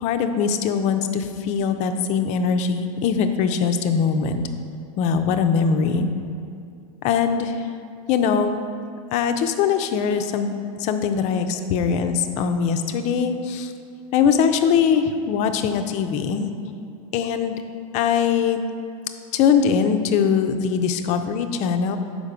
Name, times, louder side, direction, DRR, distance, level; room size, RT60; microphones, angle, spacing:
voice 1, 0.0-4.4 5.0-6.1 7.0-7.7 8.1-8.6 9.1-13.7 14.1-16.5 17.1-17.6 17.9-18.6 19.3-22.0, left 6 dB, 40° left, 7 dB, 0.5 m, -21 dB
6.7 x 5.0 x 5.0 m, 2.5 s
hypercardioid pair, 125°, 18 cm